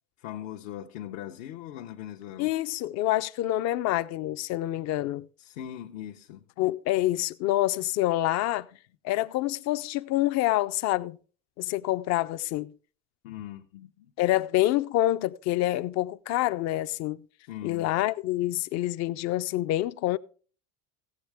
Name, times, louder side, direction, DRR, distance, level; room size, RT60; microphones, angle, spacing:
voice 1, 0.2-2.5 5.4-6.5 13.2-14.1 17.5-17.9, left 11 dB, 75° left, 1.0 m, -40 dB
voice 2, 2.4-5.3 6.6-8.7 9.0-11.2 11.6-12.7 14.2-17.2 17.6-20.2, left 15 dB, 45° left, 0.5 m, -27 dB
16.5 x 7.3 x 3.4 m
supercardioid pair, 130°, 39 cm